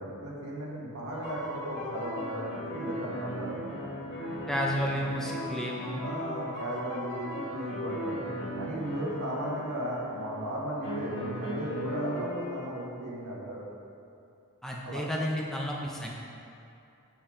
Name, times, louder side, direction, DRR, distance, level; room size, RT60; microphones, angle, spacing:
voice 1, 0.0-3.8 6.0-8.2 8.6-13.7 14.8-15.0, right 1 dB, 80° right, -4 dB, 1.7 m, -36 dB
sound 1, 1.1-10.4 10.8-12.7, equal, 50° left, 1.8 m, -37 dB
voice 2, 4.5-6.0 14.6-16.1, equal, ahead, -3 dB, 0.6 m, -32 dB
7.9 x 6.9 x 3.8 m, 2.6 s
head